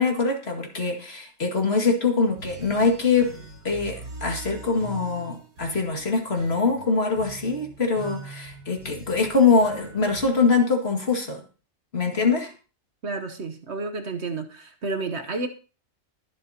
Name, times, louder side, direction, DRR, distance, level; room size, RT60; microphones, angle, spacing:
voice 1, 0.0-3.3 3.6-11.4 11.9-12.5, left 4 dB, 45° left, 2 dB, 2.4 m, -23 dB
sound 1, 2.2-10.2, right 3 dB, 85° right, 2.4 m, -42 dB
voice 2, 13.0-15.5, right 3 dB, 55° right, 6 dB, 1.3 m, -31 dB
22.5 x 7.9 x 2.9 m, 0.35 s
omnidirectional pair, 1.5 m